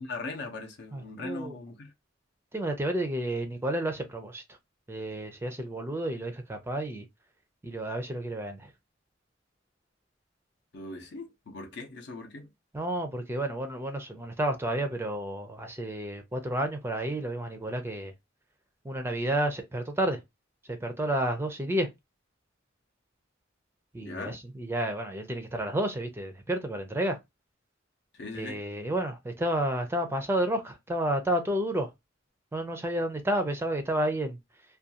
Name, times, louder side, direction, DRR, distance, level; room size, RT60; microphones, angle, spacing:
voice 1, 0.0-1.9 10.7-12.5 24.0-24.4 28.1-28.6, left 3 dB, 60° left, 0.6 m, -39 dB
voice 2, 0.9-1.6 2.5-4.4 4.9-7.1 7.6-8.7 12.7-18.1 18.8-20.2 20.7-21.9 23.9-27.2 28.3-31.9 32.5-34.4, right 1 dB, 15° right, 0.4 m, -31 dB
2.4 x 2.3 x 2.7 m
head